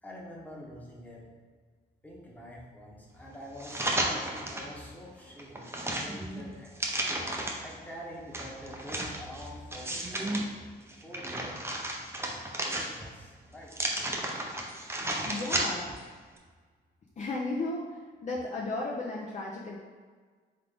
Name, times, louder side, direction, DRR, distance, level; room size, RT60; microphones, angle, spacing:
voice 1, 0.0-1.3 2.0-7.1 7.6-10.4 10.9-11.6 12.2-13.9, equal, 10° left, -3 dB, 1.1 m, -46 dB
sound 1, 3.6-4.7 5.2-7.7 8.3-10.4 10.9-13.2 13.7-16.0 16.4-16.5, right 1 dB, 10° right, 0.6 m, -33 dB
voice 2, 15.2-16.0 17.2-19.8, left 2 dB, 40° left, -4 dB, 0.6 m, -34 dB
3.7 x 3.5 x 3.5 m, 1.5 s
cardioid pair, 90°, 20 cm